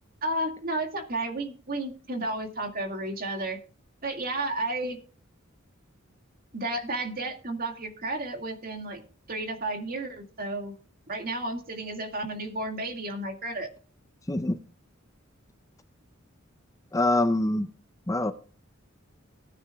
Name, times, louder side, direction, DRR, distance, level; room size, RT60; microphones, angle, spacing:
voice 1, 0.2-3.6 4.0-5.0 6.5-9.0 9.3-10.7 11.1-13.7, right 2 dB, 45° right, 5 dB, 2.0 m, -32 dB
voice 2, 16.9-17.7 18.1-18.3, left 2 dB, 15° left, 11 dB, 0.5 m, -24 dB
19.0 x 9.7 x 2.3 m, 0.41 s
head